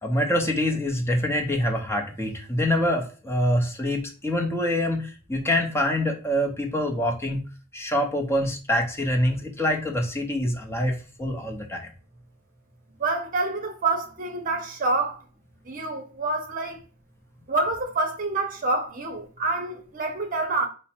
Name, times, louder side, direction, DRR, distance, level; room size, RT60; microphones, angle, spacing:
voice 1, 0.0-7.4 7.7-11.9, left 1 dB, 15° left, 0.7 m, -25 dB
voice 2, 13.0-15.2 15.6-16.8 17.5-20.7, right 3 dB, 40° right, 0.8 m, -27 dB
4.6 x 2.1 x 4.3 m
head